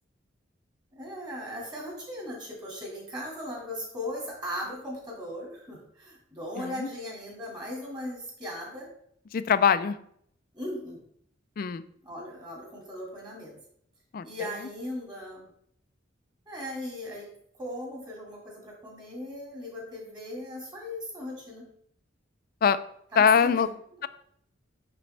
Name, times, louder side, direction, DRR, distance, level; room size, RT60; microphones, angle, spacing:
voice 1, 0.9-8.9 10.5-11.0 12.0-13.6 14.2-15.5 16.5-17.3 17.6-21.6 23.1-23.7, left 1 dB, 20° right, -1 dB, 2.3 m, -38 dB
voice 2, 6.6-6.9 9.3-10.0 11.6-11.8 14.1-14.3 22.6-22.8 23.2-23.7, left 7 dB, 45° left, 14 dB, 0.3 m, -22 dB
6.8 x 6.0 x 3.3 m, 0.67 s
head